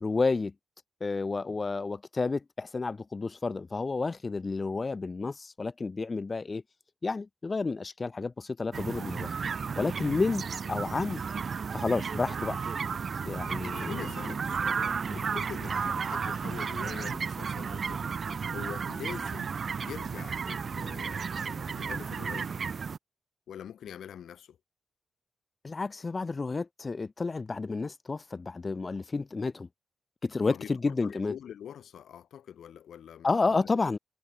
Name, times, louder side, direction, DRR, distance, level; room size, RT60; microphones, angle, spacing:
voice 1, 0.0-0.5 1.0-6.6 7.0-9.3 9.8-11.2 11.7-12.6 13.3-14.0 15.1-15.2 25.6-29.7 30.2-31.4 33.2-34.0, left 3 dB, 25° left, 0.3 m, -30 dB
sound 1, 8.7-23.0, right 6 dB, 40° right, 0.9 m, -33 dB
voice 2, 13.4-22.5 23.5-24.6 30.3-33.7, left 9 dB, 85° left, 2.2 m, -44 dB
wide cardioid pair, 180°, 0 cm